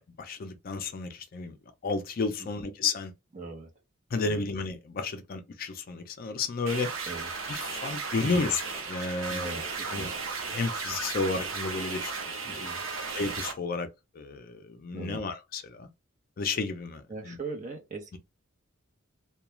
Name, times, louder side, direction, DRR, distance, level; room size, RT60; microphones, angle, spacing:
voice 1, 0.0-1.6 1.8-3.1 4.1-6.9 7.5-8.6 8.9-9.6 9.9-10.1 10.5-12.7 12.9-13.9 14.1-15.9 16.4-17.4, left 4 dB, 45° left, 0.4 m, -32 dB
voice 2, 3.3-3.7 4.2-4.4 7.1-7.3 8.2-8.5 9.3-10.1 12.4-12.8 14.9-15.2 17.1-18.2, right 3 dB, 35° right, 0.8 m, -40 dB
sound 1, 6.7-13.5, right 4 dB, 80° right, 0.8 m, -35 dB
2.3 x 2.2 x 2.9 m
head